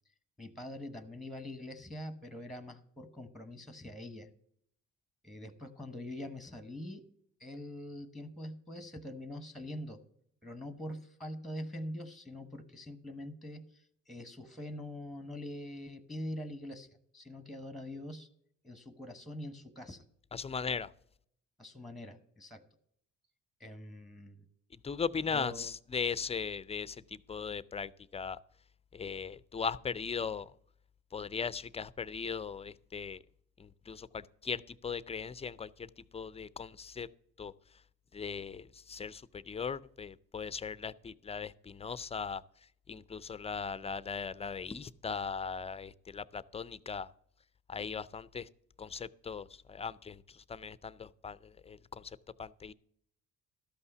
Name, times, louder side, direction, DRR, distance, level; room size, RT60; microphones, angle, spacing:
voice 1, 0.4-4.3 5.2-7.0 7.4-10.0 10.4-16.9 17.1-18.3 18.6-20.0 21.6-22.6 23.6-24.4 25.3-25.6, left 1 dB, ahead, 11 dB, 1.0 m, -44 dB
voice 2, 20.3-20.9 24.8-28.4 28.9-30.5 31.1-33.2 33.6-37.1 37.4-37.5 38.1-42.4 42.9-47.1 47.7-48.5 48.8-52.7, left 5 dB, 20° left, 18 dB, 0.4 m, -38 dB
13.0 x 5.6 x 6.7 m, 0.69 s
cardioid pair, 90°, 30 cm